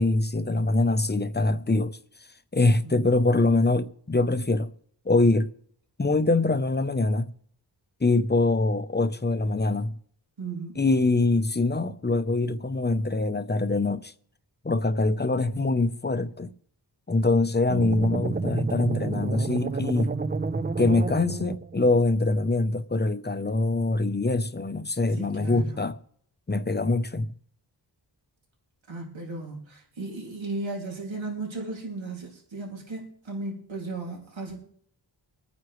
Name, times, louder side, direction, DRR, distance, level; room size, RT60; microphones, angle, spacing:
voice 1, 0.0-2.0 2.5-4.7 5.0-5.5 6.0-7.3 8.0-9.9 10.8-14.1 14.6-16.5 17.1-20.1 20.8-25.9 26.5-27.3, left 2 dB, 25° left, 0.7 m, -24 dB
voice 2, 2.6-3.1 10.4-10.8 25.0-25.8 28.9-34.6, right 3 dB, 85° right, 2.6 m, -36 dB
sound 1, 17.7-22.0, right 3 dB, 25° right, 0.5 m, -30 dB
24.5 x 9.5 x 3.2 m
wide cardioid pair, 75°, 45 cm